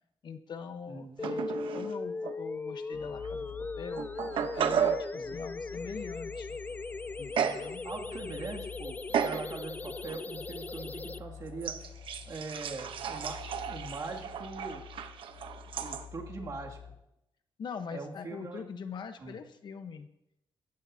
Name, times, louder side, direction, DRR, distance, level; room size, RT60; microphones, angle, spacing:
voice 1, 0.2-4.1 4.4-6.6 7.2-7.8 17.6-20.1, left 6 dB, 60° left, 8 dB, 1.2 m, -43 dB
voice 2, 0.9-1.2 5.1-5.4 7.8-11.8 12.3-14.9 15.8-16.8 17.9-18.6 19.2-19.4, right 3 dB, 45° right, -1 dB, 2.6 m, -42 dB
sound 1, 1.2-11.2, left 3 dB, 20° left, 0.5 m, -39 dB
sound 2, 1.2-1.9 2.2-2.3 3.2-3.3 4.0-5.1 7.4-7.7 8.1-8.5 9.1-9.5 10.0-10.2 11.6-16.1, right 8 dB, 80° right, 1.1 m, -33 dB
sound 3, 2.9-17.0, left 8 dB, 85° left, 4.8 m, -49 dB
27.0 x 14.5 x 2.9 m, 0.83 s
wide cardioid pair, 130°, 9 cm